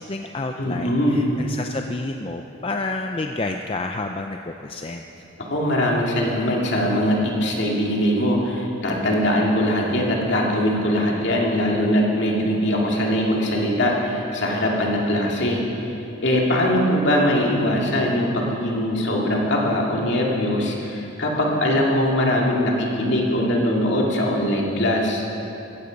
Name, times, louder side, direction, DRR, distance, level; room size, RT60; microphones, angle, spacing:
voice 1, 0.0-5.1, left 2 dB, 25° left, 4 dB, 0.5 m, -30 dB
voice 2, 0.6-1.3 5.4-15.9 16.2-25.2, left 1 dB, 60° left, -2 dB, 2.5 m, -21 dB
15.5 x 15.0 x 5.2 m, 3.0 s
head